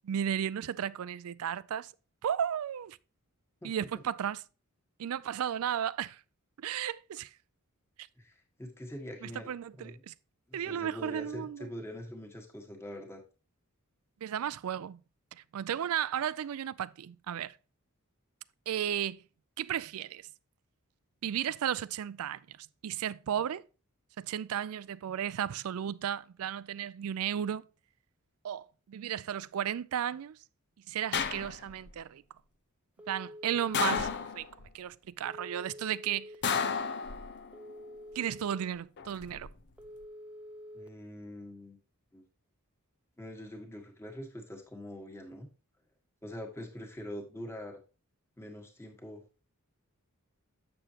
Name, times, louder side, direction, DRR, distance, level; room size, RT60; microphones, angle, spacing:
voice 1, 0.0-1.9 2.2-3.0 3.6-4.4 5.0-6.2 6.6-7.3 9.2-10.1 10.5-11.7 14.2-15.0 15.3-17.6 18.7-19.2 19.6-20.3 21.2-23.6 24.2-27.6 28.4-30.4 30.9-32.2 33.1-34.5 34.7-36.3 38.2-39.5, right 9 dB, 70° right, 0.4 m, -34 dB
voice 2, 3.6-4.0 8.2-10.0 10.5-13.2 40.7-41.8 42.1-42.2 43.2-45.5 46.2-47.8 48.4-49.2, equal, 10° left, 1.5 m, -44 dB
sound 1, 31.1-31.9 33.7-34.7 36.4-37.6 39.0-39.5, left 6 dB, 50° left, 0.7 m, -32 dB
Telephone, 33.0-34.1 35.3-36.4 37.5-38.6 39.8-40.9, equal, 5° right, 0.6 m, -47 dB
7.8 x 6.9 x 2.8 m
head